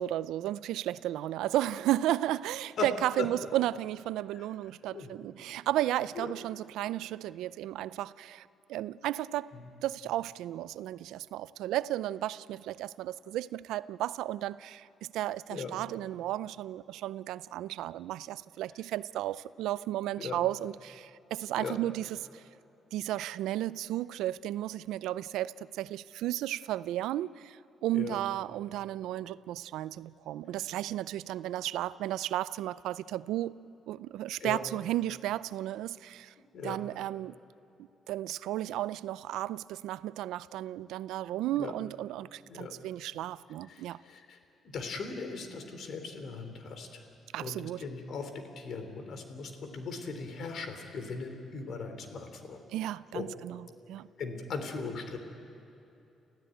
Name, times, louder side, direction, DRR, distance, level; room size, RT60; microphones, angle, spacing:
voice 1, 0.0-9.5 9.8-22.4 22.9-33.6 33.9-36.3 36.6-37.4 38.1-44.0 47.3-47.8 52.7-54.1, right 13 dB, 90° right, 0.4 m, -34 dB
voice 2, 36.4-36.8 41.5-41.7 42.5-42.8 43.7-44.4 44.6-47.1 47.4-52.6 53.1-53.3 54.2-55.2, left 4 dB, 65° left, 3.1 m, -39 dB
29.5 x 15.0 x 9.0 m
cardioid pair, 90°, 0 cm